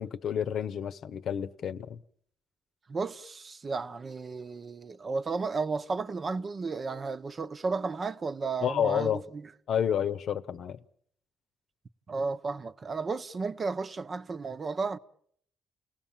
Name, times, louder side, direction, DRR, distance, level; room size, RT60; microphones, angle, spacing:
voice 1, 0.0-2.0 8.6-9.2 9.7-10.8, left 9 dB, 65° left, 0.9 m, -30 dB
voice 2, 2.9-9.4 12.1-15.0, right 4 dB, 40° right, 0.9 m, -33 dB
29.0 x 18.5 x 7.4 m
cardioid pair, 90°, 0 cm